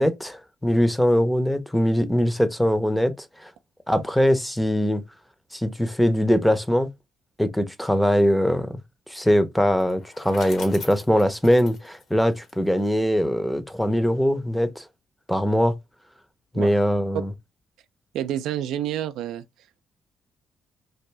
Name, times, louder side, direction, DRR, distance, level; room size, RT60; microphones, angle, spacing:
voice 1, 0.0-3.5 3.9-5.0 5.5-6.9 7.4-8.8 9.1-14.8 15.3-15.7 16.5-17.3, equal, 5° left, 0.5 m, -22 dB
Bicycle, 9.7-12.9, left 4 dB, 65° left, 1.1 m, -42 dB
voice 2, 18.1-19.4, right 11 dB, 90° right, 0.3 m, -28 dB
3.4 x 2.5 x 3.1 m
cardioid pair, 90°, 0 cm